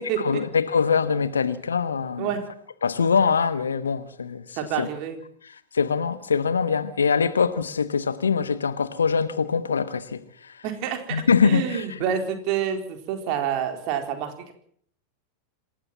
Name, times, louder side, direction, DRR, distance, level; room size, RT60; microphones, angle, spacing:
voice 1, 0.2-2.3 2.8-4.9 5.7-10.5 11.1-12.0, left 6 dB, 70° left, 1.2 m, -23 dB
voice 2, 4.6-5.2 10.6-14.5, right 9 dB, 45° right, 4.1 m, -28 dB
27.0 x 13.0 x 7.6 m
figure-of-eight pair, 90°, 0 cm